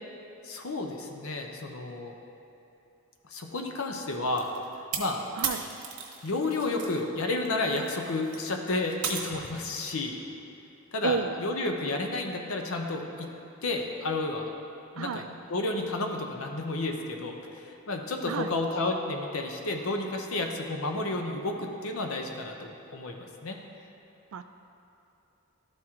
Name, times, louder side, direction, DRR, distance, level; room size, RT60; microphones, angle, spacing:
voice 1, 0.4-2.1 3.3-4.5 5.0-5.2 6.2-10.2 10.9-13.3 13.6-14.5 15.0-15.2 15.5-23.6, left 2 dB, 70° left, 3 dB, 0.8 m, -31 dB
sound 1, 4.4-7.0 7.3-9.8, right 6 dB, 85° right, 1.0 m, -36 dB
voice 2, 11.0-11.3 15.0-15.3 18.3-18.5 24.3-24.4, right 6 dB, 65° right, 9 dB, 0.3 m, -31 dB
12.0 x 4.5 x 3.7 m, 2.9 s
head